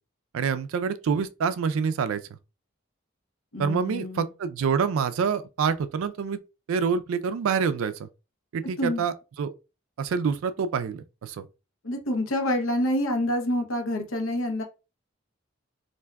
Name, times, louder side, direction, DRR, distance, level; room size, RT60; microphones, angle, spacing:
voice 1, 0.3-2.2 3.6-6.4 6.7-8.1 8.5-9.5 10.0-11.5, right 6 dB, 90° right, 0.3 m, -27 dB
voice 2, 3.5-4.3 8.8-9.0 11.8-14.6, left 1 dB, 85° left, 0.8 m, -27 dB
3.4 x 2.6 x 2.2 m
head